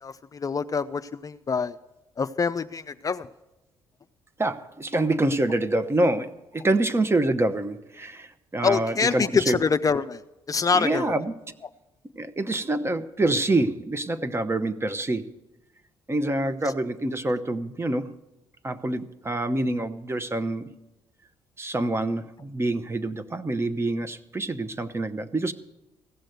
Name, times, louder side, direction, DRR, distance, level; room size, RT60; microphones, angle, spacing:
voice 1, 0.0-1.8 2.2-3.3 8.6-10.2 10.5-11.1, left 5 dB, 35° left, 10 dB, 0.4 m, -25 dB
voice 2, 4.4-9.6 10.7-11.3 12.2-15.3 16.1-18.1 18.6-20.8 21.6-25.5, right 2 dB, 25° right, 11 dB, 0.9 m, -26 dB
15.5 x 6.4 x 9.2 m, 0.99 s
supercardioid pair, 70°, 11 cm